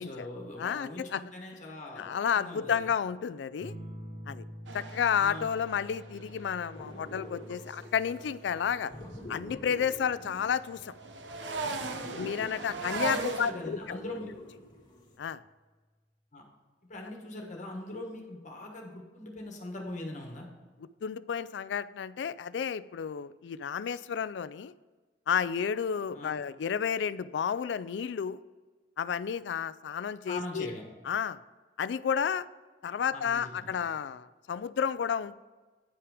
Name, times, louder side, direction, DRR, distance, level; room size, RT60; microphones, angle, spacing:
voice 1, 0.0-2.9 5.2-5.5 12.5-14.3 16.3-16.4 16.9-20.5 26.1-26.3 30.3-30.8 33.1-33.9, left 2 dB, 40° left, 1 dB, 1.4 m, -41 dB
voice 2, 0.6-1.2 2.0-3.7 4.3-4.4 4.7-8.9 9.3-10.9 12.2-14.0 15.2-15.4 21.0-24.7 25.3-28.4 29.0-30.7 31.1-31.4 31.8-32.5 32.8-35.4, left 7 dB, 70° left, 17 dB, 0.3 m, -31 dB
sound 1, 3.6-12.7 14.1-14.7, equal, 40° right, 1.2 m, -49 dB
sound 2, 4.7-9.1 9.5-13.5, right 3 dB, 75° right, 0.8 m, -39 dB
sound 3, 6.7-15.2, left 1 dB, 25° left, 1.6 m, -47 dB
9.7 x 5.8 x 4.9 m, 1.3 s
head